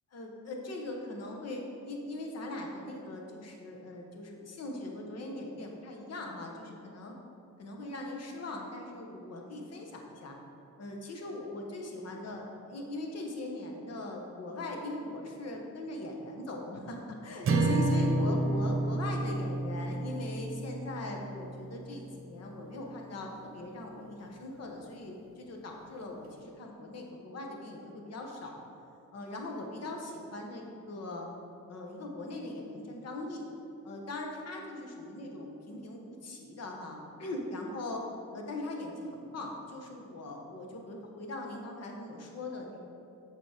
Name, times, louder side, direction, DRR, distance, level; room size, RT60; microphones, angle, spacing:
voice 1, 0.1-7.1 7.6-10.4 10.8-12.4 12.7-28.6 29.1-31.3 31.7-33.5 33.8-38.1 38.3-42.8, left 2 dB, 50° left, 1 dB, 1.3 m, -40 dB
sound 1, 17.4-21.8, right 2 dB, 40° right, 0.9 m, -30 dB
6.9 x 5.5 x 5.0 m, 2.7 s
cardioid pair, 115°, 32 cm